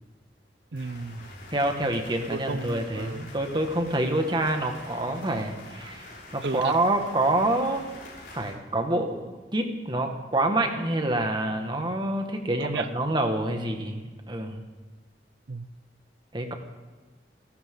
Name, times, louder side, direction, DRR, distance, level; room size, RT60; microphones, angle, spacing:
sound 1, 0.7-8.5, left 2 dB, 55° left, 7.1 m, -46 dB
voice 1, 0.7-1.3 2.3-3.3 6.4-6.8 12.6-12.9 15.5-15.7, right 3 dB, 70° right, 13 dB, 0.7 m, -33 dB
voice 2, 1.5-7.9 8.3-14.6 16.3-16.5, right 1 dB, 25° right, 4 dB, 1.9 m, -27 dB
28.5 x 13.0 x 3.9 m, 1.3 s
head